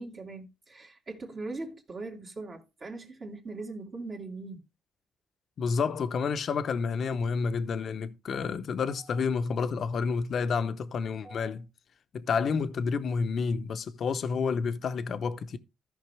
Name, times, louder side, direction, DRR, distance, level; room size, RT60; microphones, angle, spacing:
voice 1, 0.0-4.6 9.0-9.2 11.2-11.5, right 3 dB, 40° right, 2.2 m, -41 dB
voice 2, 5.6-11.7 12.1-15.6, left 5 dB, 55° left, 0.8 m, -29 dB
14.0 x 5.4 x 3.4 m
cardioid pair, 90°, 0 cm